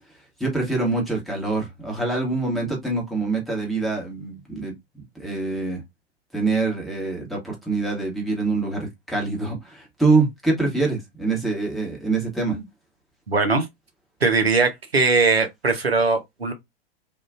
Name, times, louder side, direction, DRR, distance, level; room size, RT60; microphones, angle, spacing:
voice 1, 0.4-5.8 6.3-12.6, right 3 dB, ahead, 1.1 m, -25 dB
voice 2, 13.3-13.7 14.2-16.5, right 4 dB, 80° right, 0.9 m, -20 dB
3.5 x 2.4 x 2.5 m
figure-of-eight pair, 100°, 30 cm